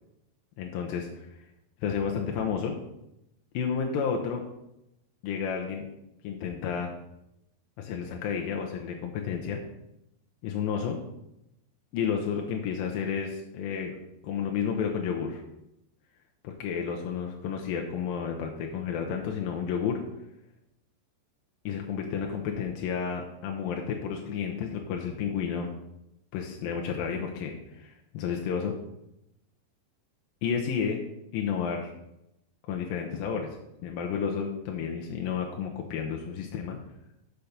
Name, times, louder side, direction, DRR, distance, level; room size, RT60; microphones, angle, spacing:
voice 1, 0.6-1.3 1.8-2.8 3.5-4.4 5.2-5.9 6.2-6.9 7.8-9.6 10.4-11.0 11.9-14.0 14.2-15.4 16.4-20.0 21.7-25.7 26.3-28.7 30.4-31.0 31.3-31.9 32.7-33.5 33.8-36.8, left 7 dB, 80° left, 2 dB, 2.1 m, -31 dB
6.8 x 5.8 x 6.6 m, 0.86 s
omnidirectional pair, 4.9 m